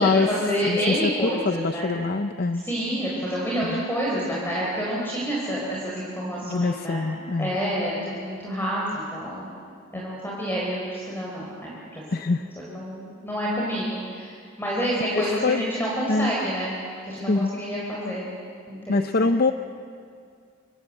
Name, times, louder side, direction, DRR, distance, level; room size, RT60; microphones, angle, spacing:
voice 1, 0.0-2.0 2.5-7.1 7.4-9.5 9.9-16.8 17.0-18.2 18.7-19.3, equal, 10° left, -5 dB, 4.8 m, -28 dB
voice 2, 1.5-2.6 6.5-7.5 12.1-12.4 15.1-15.6 16.1-16.3 17.3-17.5 18.9-19.5, left 3 dB, 50° left, 9 dB, 0.6 m, -24 dB
26.5 x 26.0 x 7.8 m, 2.3 s
head